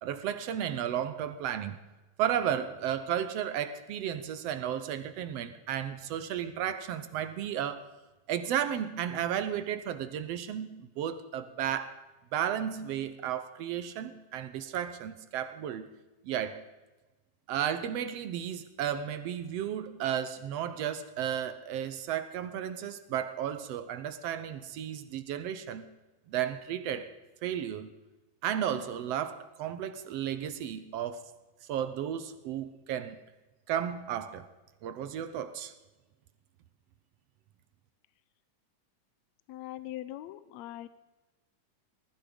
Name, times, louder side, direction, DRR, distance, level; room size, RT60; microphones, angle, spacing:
voice 1, 0.0-1.8 2.2-7.9 8.3-12.0 12.3-15.9 16.2-16.6 17.5-26.0 26.3-27.1 27.4-27.9 28.4-31.3 31.7-33.2 33.7-34.5 34.8-35.7, right 9 dB, 70° right, 1.6 m, -33 dB
voice 2, 39.5-40.9, left 14 dB, 75° left, 1.8 m, -41 dB
19.5 x 14.0 x 5.2 m
omnidirectional pair, 3.5 m